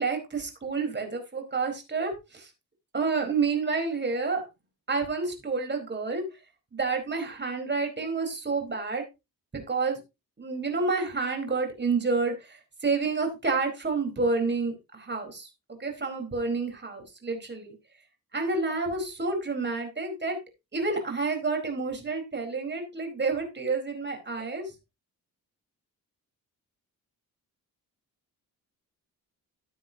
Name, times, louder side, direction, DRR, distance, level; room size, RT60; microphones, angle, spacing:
voice 1, 0.0-2.5 2.9-4.4 4.9-6.2 6.7-9.0 9.5-10.0 10.4-15.5 15.8-17.7 18.3-20.4 20.7-24.7, right 4 dB, 30° right, 4 dB, 4.4 m, -29 dB
14.0 x 9.1 x 2.9 m, 0.25 s
cardioid pair, 110°, 36 cm